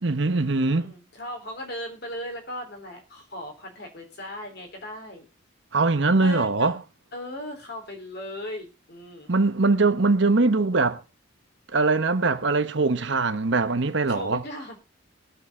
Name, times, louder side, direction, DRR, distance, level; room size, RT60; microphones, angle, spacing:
voice 1, 0.0-0.9 5.7-6.7 9.3-11.0 11.7-14.4, right 3 dB, 60° right, 1.0 m, -22 dB
voice 2, 0.7-5.3 6.1-6.7 7.1-9.3 14.1-14.8, left 1 dB, 55° left, 3.5 m, -37 dB
20.5 x 7.1 x 4.2 m
head